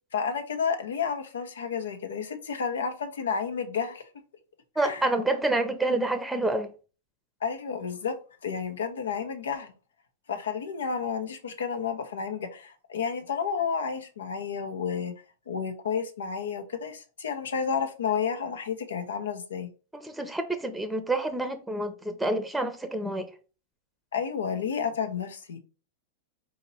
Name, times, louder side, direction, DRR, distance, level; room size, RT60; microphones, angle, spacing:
voice 1, 0.1-4.1 4.8-5.1 7.4-8.2 8.4-9.7 10.3-15.1 15.5-19.7 24.1-25.6, left 6 dB, 80° left, 0.8 m, -31 dB
voice 2, 4.8-6.7 19.9-23.3, right 2 dB, 5° right, 0.7 m, -28 dB
4.2 x 2.9 x 4.0 m
hypercardioid pair, 105°, 0 cm